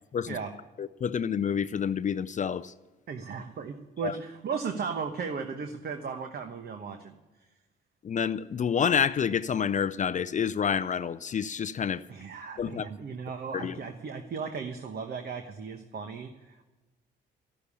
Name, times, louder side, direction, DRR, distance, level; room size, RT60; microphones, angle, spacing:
voice 1, 0.8-2.7 4.0-4.2 8.0-12.0 12.6-12.9 13.5-13.8, left 7 dB, 40° left, 0.5 m, -28 dB
voice 2, 3.1-7.1 12.1-16.6, right 5 dB, 50° right, 1.1 m, -36 dB
14.0 x 6.8 x 9.9 m
cardioid pair, 90°, 20 cm